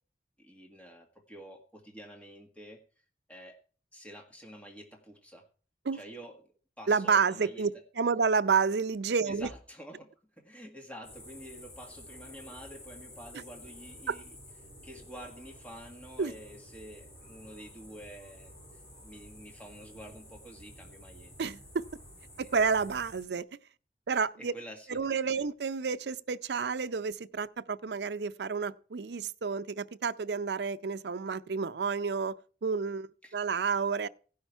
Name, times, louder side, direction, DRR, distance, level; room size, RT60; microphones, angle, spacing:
voice 1, 0.4-2.8 3.3-3.6 3.9-5.5 5.9-6.4 6.8-7.8 9.3-14.3 14.8-21.3 22.4-22.5 24.1-25.4 33.2-33.4, equal, 10° left, 1.6 m, -49 dB
voice 2, 6.9-9.5 14.1-14.2 16.2-16.3 21.4-21.8 22.4-23.4 24.1-24.5 24.9-32.4 32.6-34.1, right 5 dB, 75° right, 0.5 m, -30 dB
sound 1, 11.0-23.3, equal, 35° left, 5.7 m, -51 dB
16.5 x 5.8 x 4.5 m
head